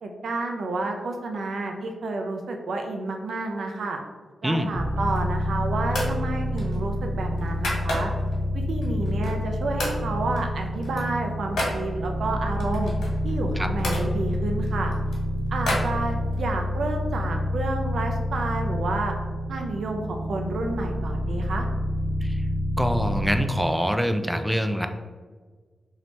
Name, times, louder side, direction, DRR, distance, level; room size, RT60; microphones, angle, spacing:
voice 1, 0.0-4.0 4.4-8.1 8.5-12.9 13.2-14.9 15.5-19.1 19.5-21.7, right 2 dB, 75° right, 3 dB, 0.4 m, -30 dB
sound 1, 4.7-23.4, left 1 dB, 35° right, 1.0 m, -28 dB
sound 2, 4.9-5.4 5.9-6.2 6.6-8.4 8.8-9.5 9.8-10.0 10.3-11.8 12.6-14.1 14.6-16.5, left 1 dB, 85° left, 1.3 m, -32 dB
voice 2, 22.8-24.9, equal, 5° right, 7 dB, 0.3 m, -25 dB
3.1 x 2.7 x 4.3 m, 1.4 s
cardioid pair, 90°, 0 cm